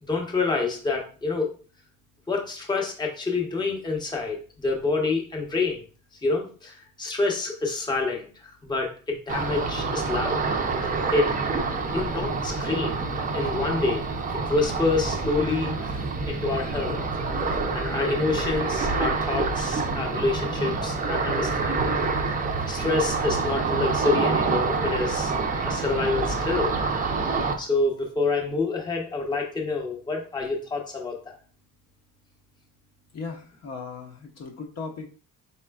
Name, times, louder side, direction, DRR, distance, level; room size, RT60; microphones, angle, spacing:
voice 1, 0.0-1.5 2.3-5.8 6.2-10.4 11.1-11.3 11.9-13.0 13.3-14.0 14.4-15.7 16.3-17.0 17.5-21.9 22.7-25.3 25.6-26.8 27.6-31.4, left 3 dB, 10° left, 0 dB, 0.8 m, -27 dB
Ocean, 9.3-27.5, right 4 dB, 25° right, 0.5 m, -27 dB
voice 2, 33.1-35.1, left 4 dB, 45° left, 1 dB, 0.7 m, -37 dB
4.2 x 3.6 x 2.3 m, 0.38 s
cardioid pair, 135°, 35 cm